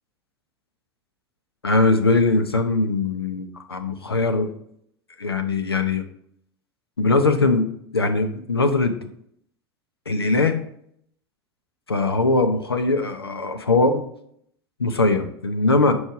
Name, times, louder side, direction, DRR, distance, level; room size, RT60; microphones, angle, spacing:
voice 1, 1.6-4.5 5.2-6.0 7.0-9.0 10.1-10.6 11.9-14.0 14.8-15.9, left 3 dB, 85° left, 7 dB, 0.7 m, -21 dB
6.2 x 4.8 x 5.3 m, 0.69 s
figure-of-eight pair, 80°, 13 cm